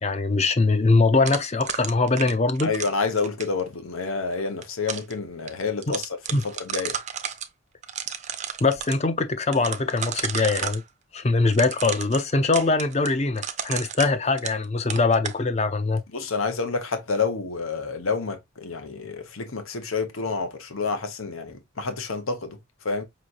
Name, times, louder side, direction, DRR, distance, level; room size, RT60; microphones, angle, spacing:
voice 1, 0.0-2.7 5.9-6.0 6.3-6.4 8.6-10.8 11.1-16.0, left 3 dB, 30° left, 0.6 m, -22 dB
sound 1, 1.3-3.6 4.4-5.1 5.5-5.6 5.8-7.5 7.8-9.0 9.5-10.8 11.5-14.6 14.9-15.4, right 8 dB, 35° right, 0.5 m, -32 dB
voice 2, 2.6-6.1 6.7-7.0 16.1-22.6 22.8-23.0, left 4 dB, 85° left, 1.0 m, -28 dB
5.4 x 3.1 x 2.5 m
head